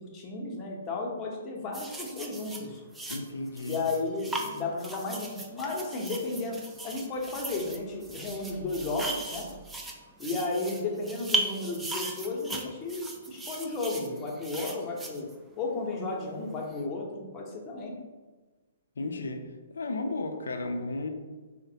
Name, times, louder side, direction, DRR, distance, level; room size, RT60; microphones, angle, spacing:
voice 1, 0.0-2.8 3.6-6.6 6.8-9.5 10.2-15.3 15.6-18.0, left 3 dB, 25° left, -1 dB, 0.7 m, -33 dB
sound 1, 1.7-15.8 16.6-16.8, right 2 dB, 10° right, 0.4 m, -38 dB
voice 2, 3.1-3.8 19.0-19.5 19.7-21.1, left 2 dB, 70° left, 6 dB, 0.4 m, -33 dB
3.8 x 2.1 x 2.7 m, 1.3 s
figure-of-eight pair, 125°, 0 cm